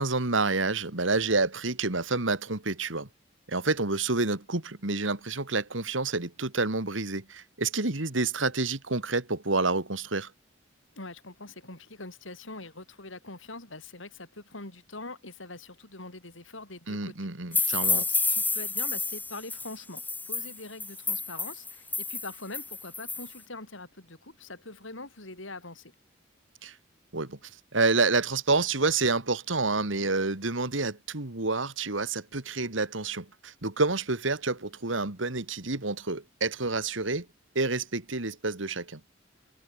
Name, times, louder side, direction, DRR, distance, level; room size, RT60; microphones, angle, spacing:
voice 1, 0.0-3.1 3.5-10.3 16.9-18.0 26.6-26.7 27.1-27.4 27.7-37.3 37.5-39.0, right 3 dB, 80° right, 2.4 m, -28 dB
voice 2, 10.9-17.1 17.5-25.9, left 2 dB, 85° left, 6.6 m, -43 dB
sound 1, 17.5-23.3, left 3 dB, 10° left, 1.6 m, -30 dB
head